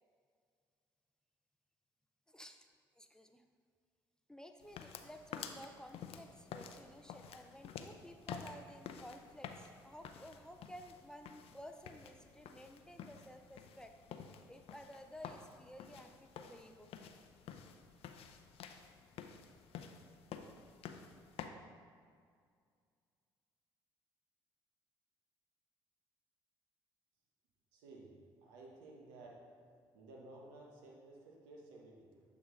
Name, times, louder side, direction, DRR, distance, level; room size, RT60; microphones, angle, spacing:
voice 1, 2.3-3.4 4.3-13.9 14.5-16.9, equal, 5° left, 6 dB, 0.4 m, -54 dB
sound 1, 4.6-21.5, left 7 dB, 60° left, 0.5 m, -51 dB
voice 2, 27.7-29.5 29.9-32.2, right 2 dB, 80° right, -1 dB, 1.0 m, -55 dB
7.8 x 3.8 x 3.8 m, 2.1 s
hypercardioid pair, 55°, 11 cm